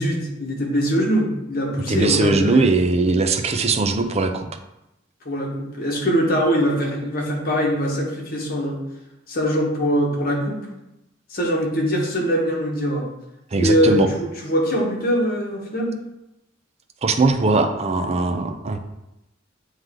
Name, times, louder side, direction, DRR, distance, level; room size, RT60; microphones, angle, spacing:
voice 1, 0.0-2.7 5.2-8.8 9.3-10.6 11.3-13.0 13.6-16.0, equal, 50° left, -2 dB, 1.4 m, -22 dB
voice 2, 1.9-4.5 13.5-14.1 17.0-18.8, right 3 dB, 35° right, 6 dB, 0.5 m, -20 dB
7.8 x 3.2 x 3.8 m, 0.90 s
head